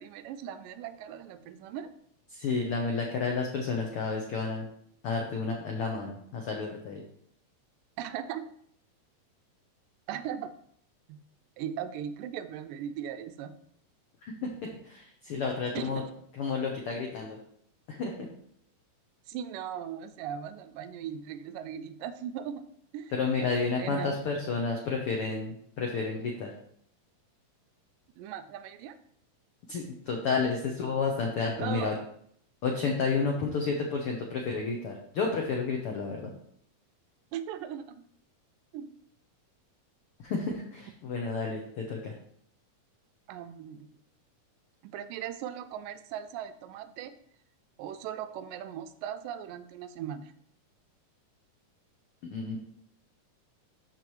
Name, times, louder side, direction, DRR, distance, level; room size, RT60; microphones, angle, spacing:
voice 1, 0.0-1.9 8.0-8.4 10.1-10.5 11.1-11.2 11.6-13.5 15.8-16.1 19.3-22.6 22.9-23.1 23.4-24.2 28.2-29.0 31.5-32.0 37.3-37.9 38.7-38.9 43.3-43.9 44.8-47.1 47.8-50.3, right 9 dB, 85° right, 11 dB, 2.1 m, -38 dB
voice 2, 2.3-4.7 5.0-7.0 14.4-16.0 16.4-17.4 17.9-18.1 23.1-26.5 29.7-31.9 32.6-36.3 40.2-42.1 52.2-52.6, left 4 dB, 90° left, 0 dB, 1.2 m, -31 dB
13.5 x 4.4 x 3.2 m, 0.67 s
omnidirectional pair, 3.9 m